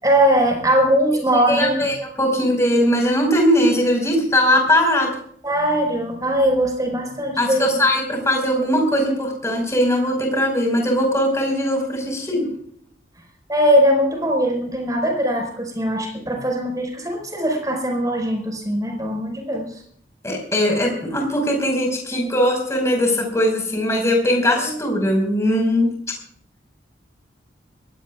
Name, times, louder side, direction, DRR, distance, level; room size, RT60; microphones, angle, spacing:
voice 1, 0.0-1.9 5.4-7.8 12.1-12.2 13.5-19.7 24.6-24.8, equal, 20° right, 2 dB, 5.0 m, -20 dB
voice 2, 1.5-5.1 7.4-12.4 20.2-25.9, equal, 15° left, 1 dB, 5.2 m, -20 dB
23.0 x 17.5 x 2.4 m, 0.63 s
head